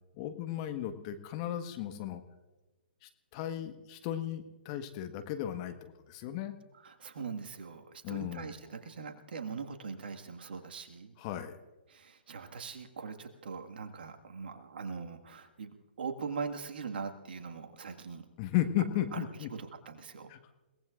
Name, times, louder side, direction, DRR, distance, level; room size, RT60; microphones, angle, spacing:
voice 1, 0.1-2.2 3.0-6.5 8.0-8.5 11.2-11.5 18.4-19.5 20.3-20.5, left 12 dB, 35° left, 7 dB, 1.4 m, -35 dB
voice 2, 6.8-11.2 11.9-18.3 18.9-19.2 19.5-20.3, right 5 dB, 60° right, 4 dB, 1.8 m, -41 dB
29.5 x 18.0 x 2.5 m, 1.2 s
figure-of-eight pair, 125°, 6 cm